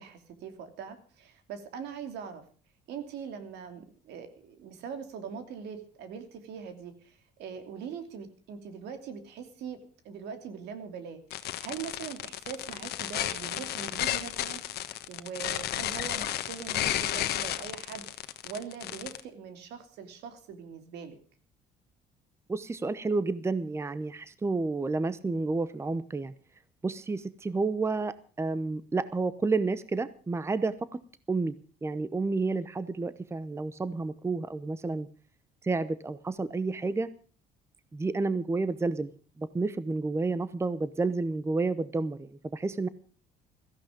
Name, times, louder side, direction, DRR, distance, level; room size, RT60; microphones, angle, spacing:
voice 1, 0.0-2.4 2.9-9.8 10.0-21.2, right 7 dB, 80° right, 8 dB, 2.8 m, -42 dB
sound 1, 11.3-19.2, left 13 dB, 70° left, 1.3 m, -33 dB
voice 2, 22.5-26.3 26.8-30.9 31.3-31.5 31.8-35.1 35.6-37.1 37.9-39.1 39.4-42.9, right 3 dB, 15° right, 15 dB, 0.8 m, -30 dB
16.5 x 14.5 x 5.1 m, 0.41 s
cardioid pair, 110°, 17 cm